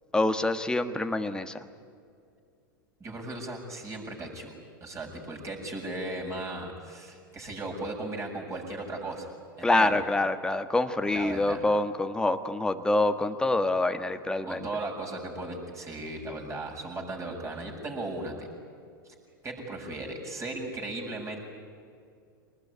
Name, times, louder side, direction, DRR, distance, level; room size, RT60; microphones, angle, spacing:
voice 1, 0.1-1.5 9.6-14.6, left 2 dB, 5° left, 7 dB, 1.5 m, -26 dB
voice 2, 3.0-4.5 4.8-9.3 9.6-9.9 11.1-11.6 14.4-18.5 19.4-21.4, right 2 dB, 25° right, 0 dB, 7.1 m, -36 dB
25.0 x 20.0 x 9.8 m, 2.4 s
hypercardioid pair, 105°, 12 cm